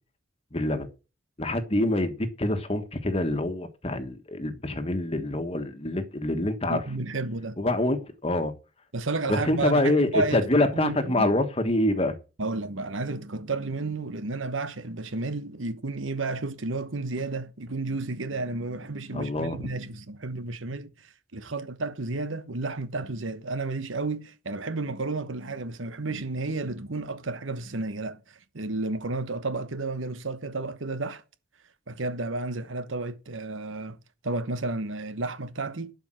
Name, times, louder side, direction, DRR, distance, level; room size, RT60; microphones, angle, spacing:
voice 1, 0.5-0.9 1.4-6.8 7.6-8.5 9.3-12.2 19.1-19.7, left 1 dB, 30° left, 1.4 m, -26 dB
voice 2, 6.7-7.6 8.9-10.5 10.7-11.3 12.4-31.2 31.9-34.0 34.2-35.9, right 3 dB, 85° right, 1.1 m, -32 dB
11.5 x 5.3 x 7.7 m
head